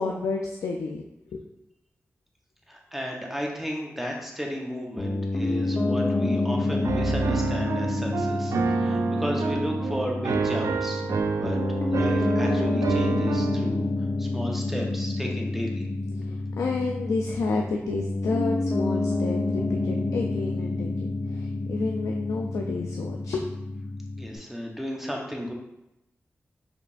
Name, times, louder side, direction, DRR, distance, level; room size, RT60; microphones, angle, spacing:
voice 1, 0.0-1.4 16.1-23.5, left 3 dB, 90° left, 1 dB, 0.3 m, -30 dB
voice 2, 2.7-11.0 11.4-11.6 11.9-13.9 14.2-15.8 24.2-25.5, equal, 5° right, -1 dB, 0.9 m, -33 dB
Piano, 5.0-24.4, left 2 dB, 35° left, 0.9 m, -28 dB
Piano 2, 6.8-13.7, right 5 dB, 75° right, 0.3 m, -28 dB
5.2 x 3.2 x 2.5 m, 0.88 s
cardioid pair, 55°, 5 cm